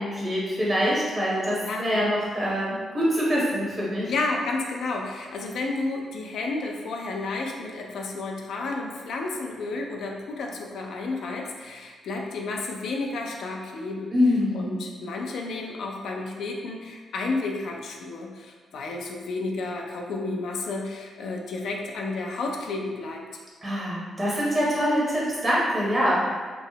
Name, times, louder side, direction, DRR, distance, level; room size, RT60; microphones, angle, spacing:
voice 1, 0.0-4.1 14.1-14.8 23.6-26.2, equal, 30° right, -6 dB, 0.8 m, -24 dB
voice 2, 1.5-2.0 4.1-14.1 14.5-23.2, left 3 dB, 75° left, 0 dB, 0.3 m, -31 dB
3.0 x 2.0 x 2.7 m, 1.5 s
cardioid pair, 70°, 0 cm